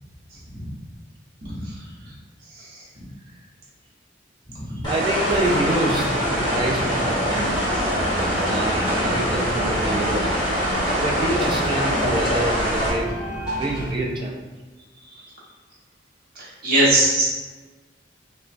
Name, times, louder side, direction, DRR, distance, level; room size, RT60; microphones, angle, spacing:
voice 1, 1.4-1.8 2.6-2.8 4.5-4.9 16.3-17.2, right 1 dB, 50° right, -7 dB, 0.9 m, -22 dB
sound 1, 4.8-12.9, equal, 25° left, 0.9 m, -24 dB
voice 2, 4.9-7.5 8.3-10.3 11.0-13.2 13.6-14.4, right 1 dB, 25° right, -1 dB, 0.3 m, -26 dB
sound 2, 5.4-13.9, equal, 5° right, 1.0 m, -30 dB
2.9 x 2.2 x 2.5 m, 1.3 s
head